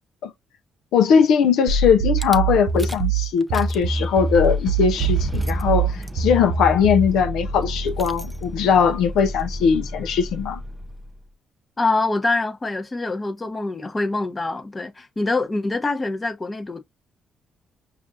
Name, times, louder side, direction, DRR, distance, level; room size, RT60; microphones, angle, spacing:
voice 1, 0.9-10.6, left 7 dB, 85° left, 0.5 m, -20 dB
sound 1, 1.7-7.1, right 4 dB, 75° right, 0.5 m, -23 dB
Rattle / Car / Engine starting, 2.2-2.4 2.8-3.1 3.4-11.1, equal, 5° right, 0.4 m, -32 dB
voice 2, 11.8-16.8, left 2 dB, 20° left, 0.7 m, -25 dB
5.1 x 2.4 x 2.5 m
cardioid pair, 90°, 0 cm